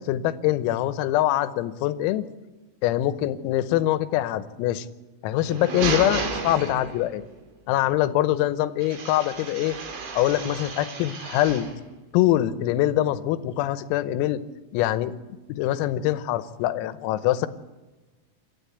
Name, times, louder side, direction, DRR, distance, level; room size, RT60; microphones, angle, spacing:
voice 1, 0.0-2.2 2.8-4.9 5.2-7.2 7.7-9.8 10.2-11.7 12.1-14.4 14.7-15.1 15.5-17.5, left 14 dB, 90° left, 13 dB, 3.6 m, -24 dB
sound 1, 5.3-7.3 8.8-11.8, right 4 dB, 65° right, 5.1 m, -32 dB
28.0 x 13.5 x 8.2 m, 1.2 s
omnidirectional pair, 6.0 m